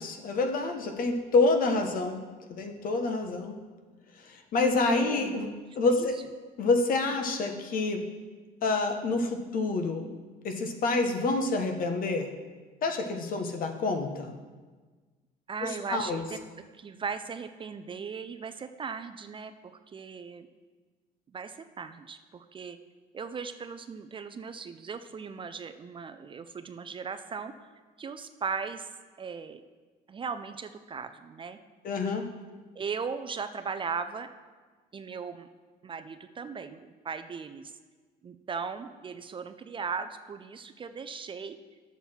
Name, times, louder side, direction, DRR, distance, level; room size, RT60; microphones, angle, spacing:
voice 1, 0.0-2.2 2.5-3.6 4.2-5.5 5.8-6.2 6.6-8.0 8.6-10.1 10.4-12.3 12.8-14.3 15.6-16.2 31.8-32.3, left 3 dB, 55° left, 5 dB, 1.1 m, -27 dB
voice 2, 4.9-5.4 6.0-6.1 15.5-16.4 16.7-20.5 21.3-22.8 23.1-27.7 28.0-28.9 29.2-29.6 30.1-31.6 32.7-34.3 34.9-35.5 35.8-37.7 38.2-41.6, right 5 dB, 30° right, 10 dB, 0.4 m, -38 dB
9.6 x 7.1 x 4.3 m, 1.4 s
cardioid pair, 110°, 17 cm